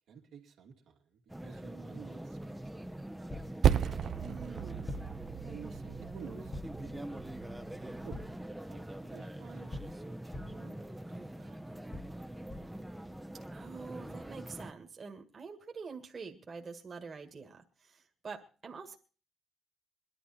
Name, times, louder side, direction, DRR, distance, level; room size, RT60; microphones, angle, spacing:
voice 1, 0.1-3.3 3.6-3.8 5.4-13.0, right 6 dB, 75° right, 1 dB, 2.3 m, -53 dB
sound 1, 1.3-14.7, right 1 dB, 5° right, 0.7 m, -44 dB
sound 2, 3.3-3.6 4.9-5.2 6.5-6.9 8.1-8.5 9.7-10.7 11.9-12.8, left 2 dB, 30° left, 1.7 m, -44 dB
Percussion, 3.6-8.5, right 9 dB, 60° right, 0.7 m, -34 dB
voice 2, 4.1-5.1 13.5-19.0, right 5 dB, 40° right, 3 dB, 1.8 m, -46 dB
21.0 x 11.5 x 4.2 m, 0.36 s
cardioid pair, 90°, 0 cm